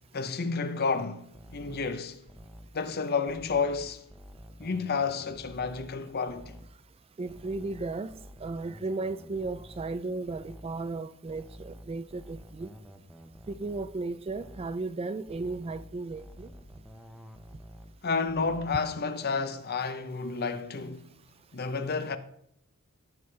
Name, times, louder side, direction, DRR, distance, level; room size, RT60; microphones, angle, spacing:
voice 1, 0.1-2.2 2.7-4.1 4.6-6.6 18.0-21.1 21.5-22.2, left 4 dB, 45° left, 0.7 m, -31 dB
sound 1, 1.3-2.8 3.3-6.0 6.3-6.8 7.3-10.8 11.3-14.0 14.3-14.8 15.3-18.0 18.3-18.8, equal, ahead, 0.8 m, -49 dB
voice 2, 7.2-8.1 8.4-12.7 13.5-16.5, right 3 dB, 25° right, 0.3 m, -35 dB
14.5 x 5.7 x 3.3 m
head